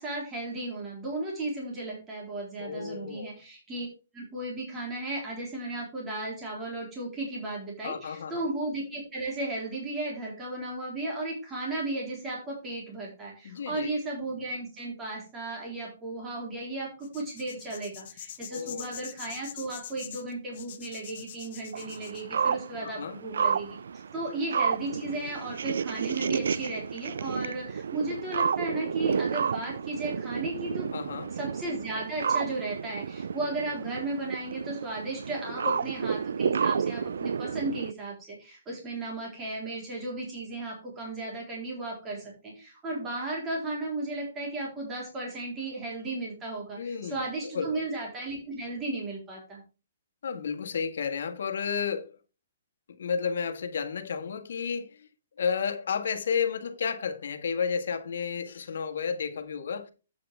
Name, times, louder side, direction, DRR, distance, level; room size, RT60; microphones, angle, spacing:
voice 1, 0.0-3.9 4.1-23.8 24.1-30.9 31.3-49.6, right 2 dB, 15° right, 3.6 m, -35 dB
voice 2, 2.6-3.3 7.8-8.5 13.4-13.9 18.5-18.9 22.8-23.2 30.9-31.3 35.5-35.8 46.8-47.2 47.5-47.8 50.2-52.2 53.0-55.1 55.4-59.9, left 6 dB, 75° left, 1.6 m, -32 dB
sound 1, 17.0-22.2, left 10 dB, 45° left, 1.1 m, -44 dB
sound 2, 21.7-37.9, right 6 dB, 80° right, 0.4 m, -31 dB
8.7 x 7.6 x 3.4 m
hypercardioid pair, 165°, 0 cm